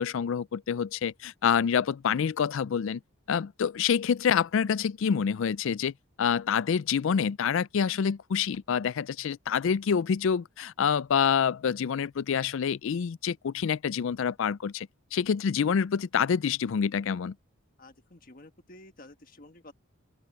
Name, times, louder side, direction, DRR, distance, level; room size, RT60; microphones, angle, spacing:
voice 1, 0.0-3.0 3.3-17.3, left 7 dB, 65° left, 0.4 m, -27 dB
voice 2, 17.8-19.7, left 2 dB, 40° left, 1.5 m, -51 dB
open air
head